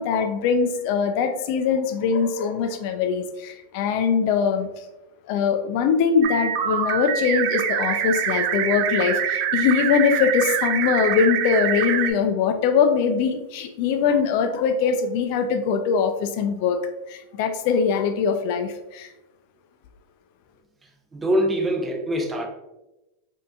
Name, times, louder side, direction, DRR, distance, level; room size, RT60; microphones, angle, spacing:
voice 1, 0.0-4.8 5.3-16.8 17.1-19.1, left 6 dB, 60° left, 7 dB, 0.3 m, -22 dB
sound 1, 6.2-12.1, right 9 dB, 55° right, 0.3 m, -25 dB
voice 2, 21.1-22.5, equal, 15° right, 0 dB, 0.7 m, -23 dB
3.9 x 2.7 x 2.3 m, 0.97 s
supercardioid pair, 120°, 0 cm